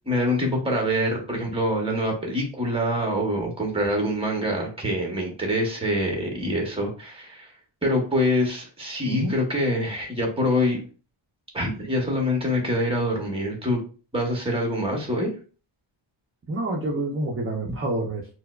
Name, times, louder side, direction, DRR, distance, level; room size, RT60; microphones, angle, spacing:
voice 1, 0.1-7.5 7.8-10.8 11.5-13.8 14.1-15.3, equal, 10° right, 1 dB, 0.9 m, -25 dB
voice 2, 16.5-18.3, right 1 dB, 30° right, -1 dB, 0.5 m, -27 dB
4.5 x 2.0 x 2.2 m, 0.37 s
wide cardioid pair, 150°, 47 cm